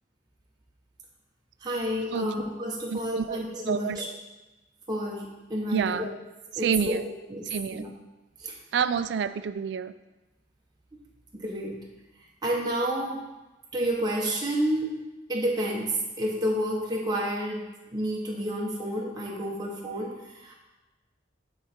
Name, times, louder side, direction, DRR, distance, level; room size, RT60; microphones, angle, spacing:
voice 1, 1.6-4.1 4.9-6.1 6.6-7.0 7.3-7.9 8.4-8.5 11.3-11.8 12.4-13.2 13.7-14.9 15.3-17.6 17.9-20.5, equal, 20° right, -3 dB, 0.8 m, -30 dB
voice 2, 2.9-4.0 5.7-6.1 6.6-7.1 7.5-7.9 8.7-9.9, right 7 dB, 70° right, 13 dB, 0.3 m, -28 dB
8.6 x 3.8 x 4.2 m, 1.1 s
head